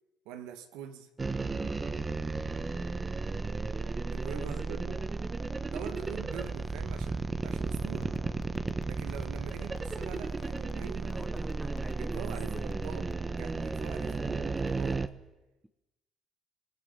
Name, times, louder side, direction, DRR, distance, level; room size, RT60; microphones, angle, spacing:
voice 1, 0.3-1.1 4.0-5.1 5.7-8.2 8.9-11.2 12.0-15.1, right 9 dB, 90° right, 2.2 m, -44 dB
sound 1, 1.2-15.1, right 3 dB, 20° right, 1.3 m, -34 dB
voice 2, 4.3-4.6 11.0-13.0, right 1 dB, 5° right, 1.3 m, -46 dB
sound 2, 8.0-13.3, left 11 dB, 60° left, 1.0 m, -48 dB
27.0 x 18.5 x 7.2 m
cardioid pair, 100°, 0 cm